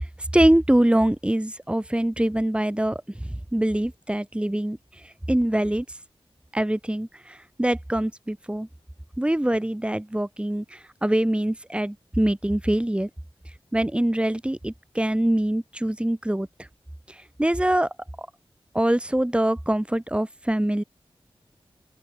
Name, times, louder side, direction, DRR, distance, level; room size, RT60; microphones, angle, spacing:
voice 1, 0.3-3.0 3.5-4.8 5.3-5.8 6.5-8.7 9.2-13.1 13.7-16.5 17.4-17.9 18.2-18.3 18.7-20.8, right 1 dB, 10° right, 2.9 m, -23 dB
open air
wide cardioid pair, 95°, 10 cm